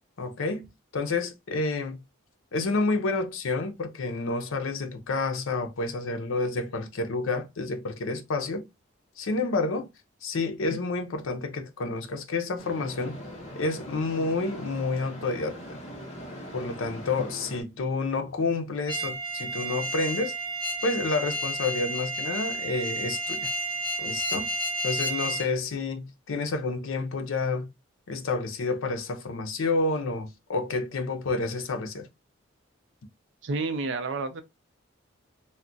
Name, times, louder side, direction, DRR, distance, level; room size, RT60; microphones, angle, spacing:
voice 1, 0.2-2.0 2.5-8.7 9.2-9.9 10.2-13.2 13.5-15.8 16.5-20.3 20.8-23.5 24.0-24.5 24.8-27.7 28.1-32.1, left 3 dB, 75° left, 0.5 m, -29 dB
sound 1, 12.6-17.6, equal, 30° left, 0.8 m, -41 dB
sound 2, 18.9-25.5, right 1 dB, 20° right, 0.7 m, -31 dB
voice 2, 33.4-34.4, right 3 dB, 60° right, 0.5 m, -30 dB
2.3 x 2.1 x 3.7 m
head